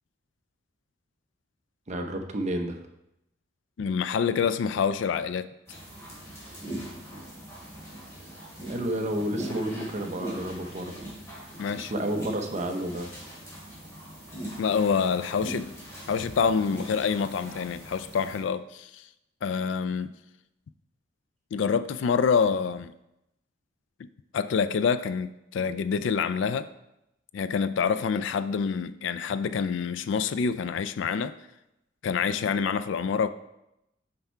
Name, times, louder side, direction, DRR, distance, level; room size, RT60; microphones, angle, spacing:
voice 1, 1.9-2.8 8.7-11.0 11.7-13.1, right 1 dB, 40° right, 0.8 m, -31 dB
voice 2, 3.8-5.5 11.6-11.9 14.6-15.7 16.1-19.0 19.4-20.1 21.5-22.9 24.0-24.1 24.3-26.7 27.3-31.3 32.0-33.3, left 6 dB, 70° left, 0.3 m, -26 dB
sound 1, 5.7-18.4, right 1 dB, 15° left, 2.4 m, -41 dB
5.7 x 5.5 x 4.4 m
head